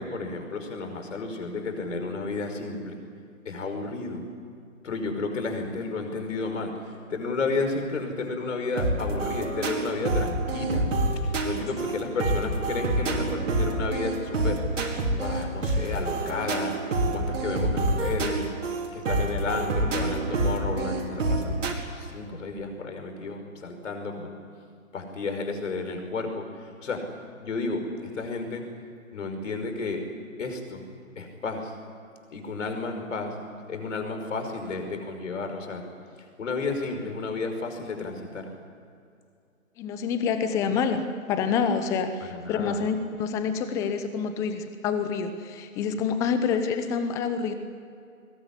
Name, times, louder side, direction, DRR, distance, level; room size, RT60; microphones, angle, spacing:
voice 1, 0.0-3.0 3.4-4.2 4.8-10.9 11.4-14.6 15.2-16.7 17.1-18.5 18.9-21.6 21.9-24.3 24.9-27.0 27.4-28.6 29.1-30.0 30.4-30.8 31.2-31.7 32.3-33.3 33.7-35.8 36.4-38.5 42.3-42.8, left 3 dB, 60° left, 5 dB, 5.5 m, -32 dB
sound 1, 8.8-21.7, right 2 dB, 65° right, 4.8 m, -27 dB
voice 2, 39.8-47.5, left 6 dB, 5° left, 9 dB, 0.7 m, -27 dB
21.5 x 21.0 x 9.9 m, 2.4 s
hypercardioid pair, 145°, 41 cm